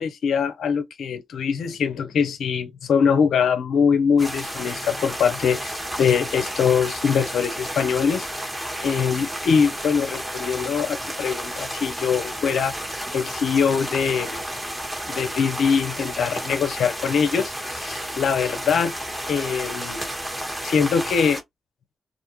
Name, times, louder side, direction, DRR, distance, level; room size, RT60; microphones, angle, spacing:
voice 1, 0.0-8.3 8.8-14.4 15.1-18.9 19.3-20.0 20.6-21.4, left 6 dB, 75° left, 0.5 m, -23 dB
sound 1, 4.2-21.4, right 1 dB, 15° right, 1.2 m, -32 dB
2.4 x 2.3 x 2.9 m
supercardioid pair, 40°, 0 cm